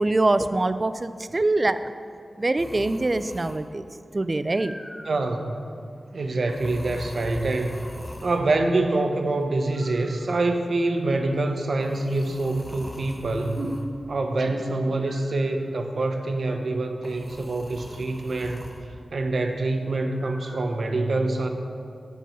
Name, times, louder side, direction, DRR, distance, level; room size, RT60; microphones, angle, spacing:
voice 1, 0.0-1.9 2.4-3.8 4.1-4.8, right 2 dB, 30° right, 12 dB, 0.3 m, -24 dB
sound 1, 2.6-3.8 4.5-5.4 6.5-8.4 9.7-10.7 11.8-13.9 15.1-15.8 17.0-18.9 20.2-20.6, left 1 dB, 15° left, 0.7 m, -42 dB
voice 2, 5.1-5.6 6.1-7.8 8.2-13.8 14.1-18.7 19.1-21.5, right 2 dB, 65° right, 5 dB, 0.8 m, -25 dB
7.5 x 6.9 x 5.6 m, 2.4 s
wide cardioid pair, 120°, 0 cm